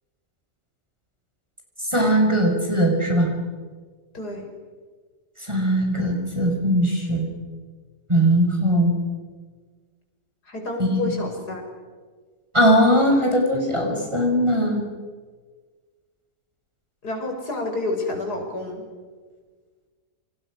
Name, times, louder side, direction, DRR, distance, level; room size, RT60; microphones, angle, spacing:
voice 1, 1.9-3.3 5.4-7.3 8.1-8.9 10.8-11.2 12.5-14.8, equal, 15° right, 0 dB, 6.0 m, -20 dB
voice 2, 4.1-4.5 10.5-11.6 17.0-18.9, left 2 dB, 65° left, 2 dB, 6.7 m, -29 dB
29.5 x 28.5 x 6.5 m, 1.5 s
omnidirectional pair, 1.8 m